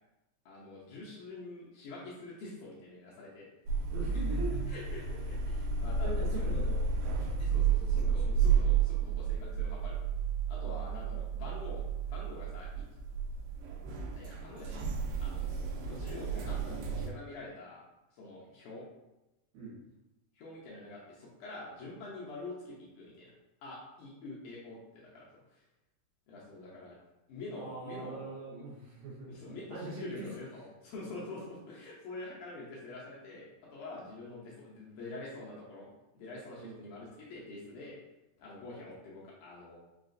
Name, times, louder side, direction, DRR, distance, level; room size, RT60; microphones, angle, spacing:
voice 1, 0.5-3.5 4.1-4.4 4.7-6.5 7.4-10.0 10.5-12.9 14.2-14.8 15.2-17.8 18.1-18.9 20.4-23.3 23.6-25.6 26.3-27.0 27.3-28.3 29.3-35.9 36.1-38.0 38.4-39.8, left 2 dB, 75° left, -5 dB, 2.0 m, -46 dB
sound 1, 3.7-17.1, right 6 dB, 85° right, 2.3 m, -32 dB
voice 2, 3.9-4.5 6.0-7.6 8.0-8.5 19.5-19.8 27.5-29.3 29.7-30.3 36.5-36.8, right 3 dB, 70° right, -6 dB, 2.5 m, -42 dB
5.5 x 2.4 x 2.5 m, 0.98 s
omnidirectional pair, 4.0 m